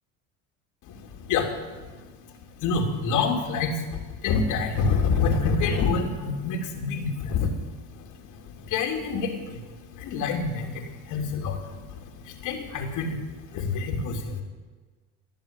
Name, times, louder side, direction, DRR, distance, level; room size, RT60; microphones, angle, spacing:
voice 1, 0.8-14.4, left 4 dB, 65° left, 1 dB, 2.9 m, -28 dB
21.0 x 7.8 x 8.9 m, 1.4 s
supercardioid pair, 85°, 32 cm